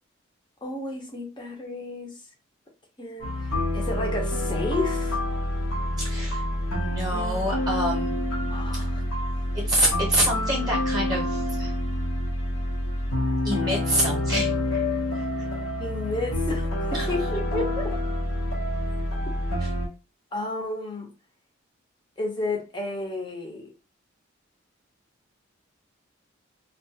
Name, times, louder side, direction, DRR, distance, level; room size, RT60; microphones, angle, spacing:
voice 1, 0.6-2.2 3.0-5.2 8.5-9.1 15.8-17.9 19.3-19.4 20.3-21.1 22.2-23.7, left 2 dB, 25° left, 0.6 m, -32 dB
sound 1, 3.2-19.9, left 1 dB, 90° left, 0.8 m, -27 dB
voice 2, 6.0-6.4 6.7-8.2 8.7-8.8 9.5-11.7 13.4-14.8 15.2-15.5 16.9-17.1 19.6-19.7, right 1 dB, 20° right, 0.8 m, -27 dB
2.3 x 2.2 x 2.7 m
head